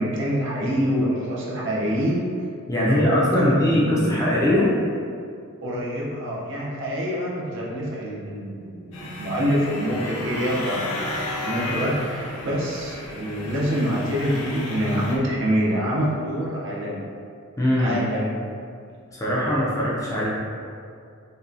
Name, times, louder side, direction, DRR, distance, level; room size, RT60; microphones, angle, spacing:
voice 1, 0.0-2.3 2.8-4.2 5.6-17.1 17.8-18.4, equal, 55° right, -5 dB, 0.8 m, -26 dB
voice 2, 2.7-4.7 17.6-18.0 19.1-20.3, left 1 dB, 15° left, -6 dB, 0.5 m, -21 dB
sound 1, 8.9-15.2, left 1 dB, 75° left, 0.7 m, -32 dB
5.3 x 2.3 x 2.7 m, 2.3 s
head